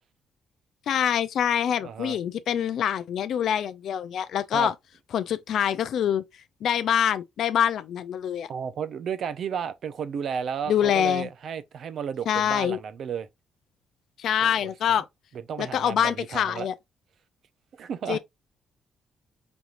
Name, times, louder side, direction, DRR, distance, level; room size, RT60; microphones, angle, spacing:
voice 1, 0.9-4.7 5.1-6.2 6.6-8.5 10.7-11.3 12.3-12.8 14.2-15.1 15.6-16.7 18.1-18.2, left 9 dB, 70° left, 0.3 m, -25 dB
voice 2, 1.8-2.2 4.5-4.7 8.5-13.3 14.4-14.7 15.5-16.7 17.8-18.2, right 7 dB, 60° right, 0.5 m, -33 dB
5.2 x 3.0 x 2.5 m
cardioid pair, 90°, 0 cm